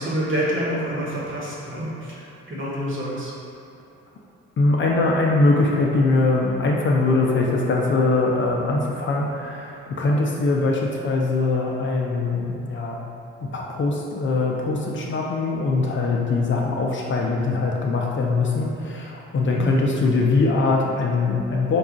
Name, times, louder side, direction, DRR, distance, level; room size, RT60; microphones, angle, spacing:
voice 1, 0.0-3.3 19.4-19.7, equal, 40° right, -6 dB, 1.2 m, -27 dB
voice 2, 4.6-13.0 13.4-21.8, left 3 dB, 40° left, -1 dB, 0.5 m, -22 dB
4.7 x 2.3 x 3.8 m, 2.7 s
cardioid pair, 90°, 30 cm